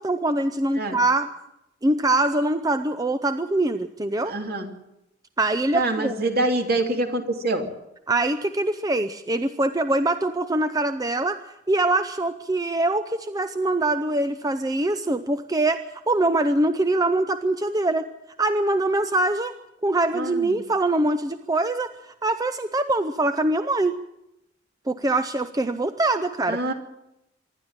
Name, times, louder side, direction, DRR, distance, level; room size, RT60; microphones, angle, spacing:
voice 1, 0.0-1.3 1.8-4.3 5.4-6.1 8.1-18.1 18.4-19.5 19.8-24.0 24.9-26.7, right 2 dB, 20° right, 10 dB, 0.7 m, -23 dB
voice 2, 4.3-4.7 5.7-7.7 20.1-20.5 26.5-26.7, right 2 dB, 55° right, 3 dB, 3.1 m, -25 dB
25.5 x 11.5 x 9.0 m, 0.87 s
head